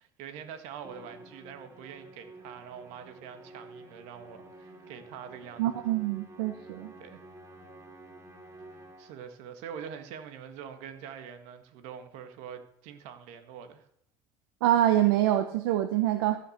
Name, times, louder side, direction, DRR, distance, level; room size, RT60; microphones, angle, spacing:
voice 1, 0.0-5.7 7.0-7.2 9.0-13.9, right 8 dB, 70° right, 1.8 m, -44 dB
Musical instrument, 0.8-9.3, right 2 dB, 25° right, 2.8 m, -50 dB
voice 2, 5.6-6.9 14.6-16.4, right 13 dB, 85° right, 0.8 m, -25 dB
14.5 x 6.5 x 6.6 m
supercardioid pair, 100°, 12 cm